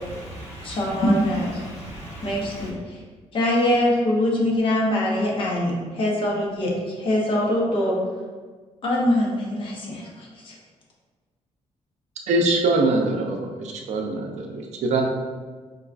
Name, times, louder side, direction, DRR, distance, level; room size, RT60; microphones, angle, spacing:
voice 1, 0.0-2.7, right 1 dB, 65° left, -6 dB, 1.1 m, -28 dB
voice 2, 0.6-1.0 2.2-2.8 3.3-8.0 8.8-10.5, left 1 dB, 45° left, -3 dB, 0.7 m, -23 dB
voice 3, 12.3-15.0, right 2 dB, 70° right, 2 dB, 0.5 m, -23 dB
4.6 x 2.3 x 2.4 m, 1.4 s
cardioid pair, 175°, 12 cm